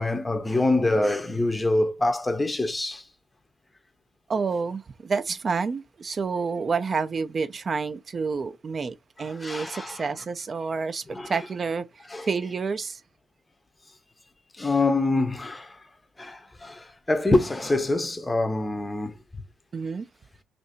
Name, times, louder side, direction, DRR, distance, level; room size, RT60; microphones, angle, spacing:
voice 1, 0.0-3.1 9.2-10.0 11.1-11.3 12.1-12.3 14.5-15.8 16.2-19.4, left 2 dB, 15° left, 0.6 m, -25 dB
voice 2, 4.3-13.0 19.7-20.1, right 5 dB, 40° right, 0.4 m, -29 dB
2.7 x 2.6 x 4.2 m
cardioid pair, 90°, 0 cm